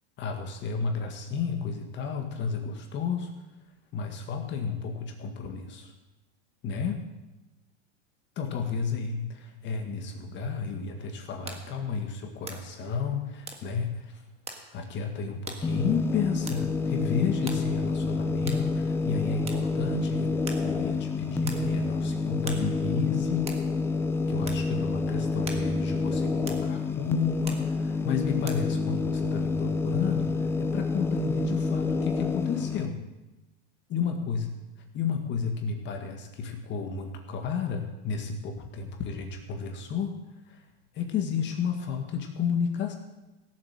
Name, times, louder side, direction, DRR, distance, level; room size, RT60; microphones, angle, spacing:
voice 1, 0.2-3.3 3.9-5.9 6.6-7.0 8.4-14.2 14.7-23.5 24.3-33.0 33.9-34.5 34.9-40.2 40.5-40.7 40.9-42.9, left 6 dB, 30° left, 4 dB, 1.8 m, -32 dB
sound 1, 11.0-28.6, right 4 dB, 15° right, 1.6 m, -47 dB
sound 2, 15.6-32.9, left 4 dB, 5° left, 0.4 m, -28 dB
16.5 x 7.6 x 7.4 m, 1.1 s
supercardioid pair, 135°, 34 cm